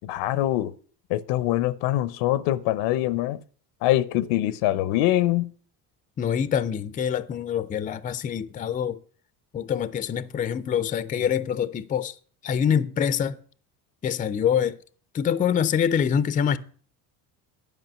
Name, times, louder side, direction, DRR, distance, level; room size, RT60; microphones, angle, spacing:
voice 1, 0.0-0.7 1.1-3.4 3.8-5.5, left 14 dB, 80° left, 0.8 m, -24 dB
voice 2, 6.2-9.0 9.5-12.1 12.4-13.4 14.0-14.8 15.1-16.6, left 8 dB, 20° left, 0.4 m, -25 dB
11.0 x 5.3 x 7.5 m
cardioid pair, 130°, 42 cm